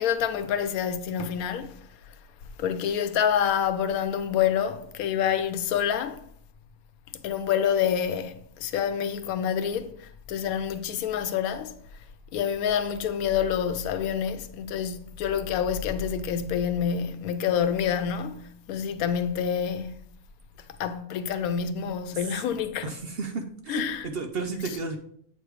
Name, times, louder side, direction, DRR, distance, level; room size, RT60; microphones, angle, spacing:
voice 1, 0.0-1.8 2.6-6.2 7.2-11.7 12.3-19.9 20.8-22.9 23.7-24.1, left 8 dB, 85° left, 1.1 m, -27 dB
voice 2, 22.8-25.0, right 4 dB, 55° right, 0.7 m, -33 dB
7.9 x 3.4 x 4.6 m
omnidirectional pair, 1.5 m